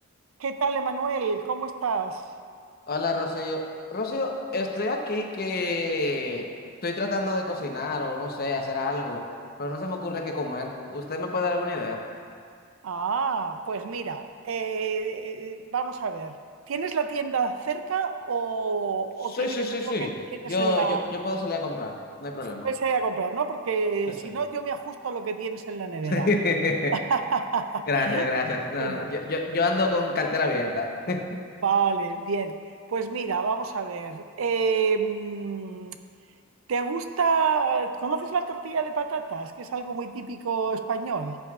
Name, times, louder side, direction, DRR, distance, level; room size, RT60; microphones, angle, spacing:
voice 1, 0.4-2.2 12.8-16.4 16.7-19.5 19.8-21.0 22.6-26.3 27.1-28.3 28.8-29.1 31.6-32.6 32.9-36.0 36.7-41.4, right 5 dB, 80° right, 8 dB, 0.5 m, -28 dB
voice 2, 2.9-3.6 3.9-6.4 6.8-9.2 9.6-12.0 19.3-20.1 20.4-21.9 22.2-22.7 26.0-26.9 27.9-31.2, left 2 dB, 50° left, 2 dB, 0.9 m, -27 dB
13.5 x 7.7 x 2.4 m, 2.2 s
head